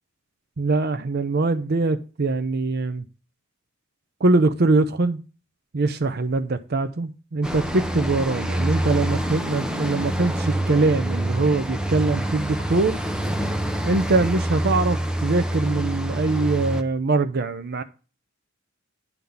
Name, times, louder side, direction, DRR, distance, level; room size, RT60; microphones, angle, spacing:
voice 1, 0.6-3.1 4.2-5.2 5.7-13.0 13.8-17.8, right 3 dB, 50° right, 0.6 m, -22 dB
sound 1, 7.4-16.8, right 1 dB, 5° right, 0.7 m, -26 dB
11.0 x 3.9 x 7.0 m
head